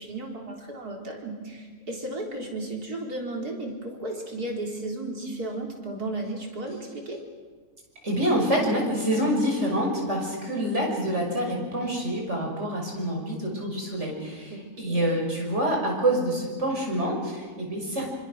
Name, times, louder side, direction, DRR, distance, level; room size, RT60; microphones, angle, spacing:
voice 1, 0.0-7.2 14.5-15.1, right 2 dB, 90° right, 0 dB, 4.3 m, -34 dB
voice 2, 8.0-18.1, right 1 dB, 50° right, 0 dB, 6.2 m, -26 dB
26.0 x 25.0 x 6.5 m, 1.4 s
omnidirectional pair, 1.6 m